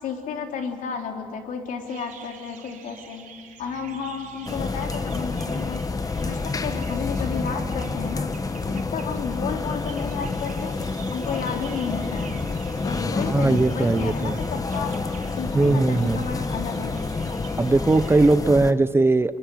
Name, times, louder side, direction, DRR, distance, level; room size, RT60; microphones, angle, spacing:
voice 1, 0.0-3.3 3.6-5.8 6.2-8.4 8.7-10.8 11.1-12.4 12.8-14.9 15.3-17.5, left 6 dB, 75° left, 3 dB, 3.6 m, -32 dB
sound 1, 1.8-18.4, right 7 dB, 70° right, 4.0 m, -47 dB
sound 2, 3.6-5.1 6.7-7.3 8.8-9.1 10.7-12.2 12.7-14.0, left 2 dB, 50° left, 6.0 m, -52 dB
sound 3, 4.5-18.7, left 3 dB, 25° left, 1.1 m, -28 dB
voice 2, 13.3-14.4 15.5-16.2 17.6-19.4, right 3 dB, 15° right, 14 dB, 0.7 m, -19 dB
26.0 x 23.5 x 9.3 m, 2.5 s
cardioid pair, 105°, 14 cm